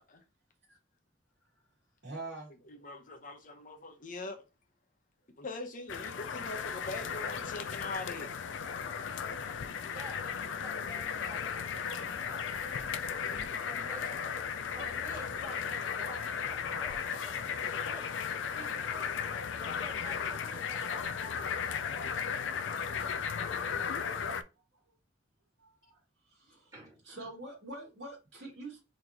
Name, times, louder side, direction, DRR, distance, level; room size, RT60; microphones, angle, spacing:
voice 1, 2.0-2.5 24.2-24.4 25.6-26.0 26.3-26.7 27.1-28.8, right 2 dB, 65° right, 1.8 m, -45 dB
voice 2, 2.7-4.4 5.4-8.3 13.1-13.5 19.6-19.8, left 2 dB, 45° left, 0.8 m, -42 dB
sound 1, 5.9-24.4, left 7 dB, 80° left, 0.4 m, -35 dB
voice 3, 9.9-12.6 13.7-14.3 14.8-19.1 19.6-22.0 23.8-23.9 26.7-27.1, right 1 dB, 20° right, 2.0 m, -51 dB
3.9 x 3.2 x 2.8 m
head